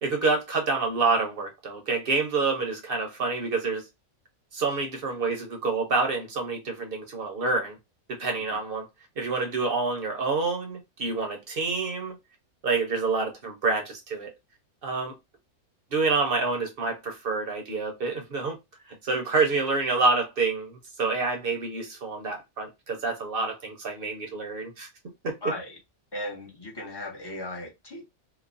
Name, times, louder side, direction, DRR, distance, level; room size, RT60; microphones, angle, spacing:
voice 1, 0.0-3.9 4.5-7.8 8.1-8.9 9.2-12.2 12.6-14.3 14.8-15.1 15.9-18.6 18.9-24.9 25.2-25.4, right 3 dB, 50° right, 0.8 m, -27 dB
voice 2, 25.4-25.7 26.1-28.1, left 1 dB, 30° left, 0.4 m, -36 dB
3.0 x 2.0 x 2.5 m
omnidirectional pair, 1.5 m